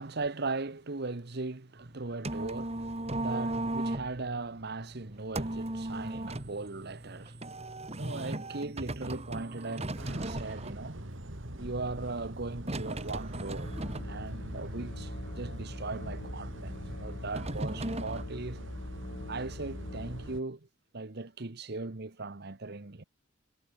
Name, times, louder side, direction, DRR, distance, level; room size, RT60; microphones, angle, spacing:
voice 1, 0.0-7.4 7.9-11.0 11.6-13.8 14.0-18.6 19.3-20.7 20.9-23.0, right 3 dB, 55° right, 1.2 m, -38 dB
sound 1, 1.8-18.2, right 1 dB, 30° right, 2.2 m, -38 dB
sound 2, 10.0-20.4, right 1 dB, 70° right, 4.2 m, -44 dB
Musical instrument, 13.6-20.4, left 1 dB, 55° left, 1.6 m, -43 dB
head